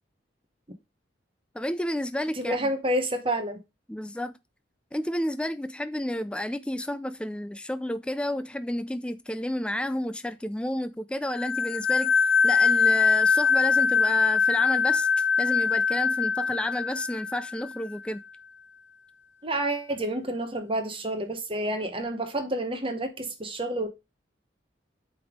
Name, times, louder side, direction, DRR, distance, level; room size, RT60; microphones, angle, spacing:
voice 1, 1.5-2.7 3.9-4.3 4.9-12.2 12.4-18.2, left 1 dB, 5° left, 0.3 m, -31 dB
voice 2, 2.4-3.6 19.4-23.9, right 1 dB, 30° right, 0.9 m, -29 dB
sound 1, 11.4-17.8, left 5 dB, 85° left, 0.7 m, -23 dB
8.4 x 3.5 x 3.6 m
head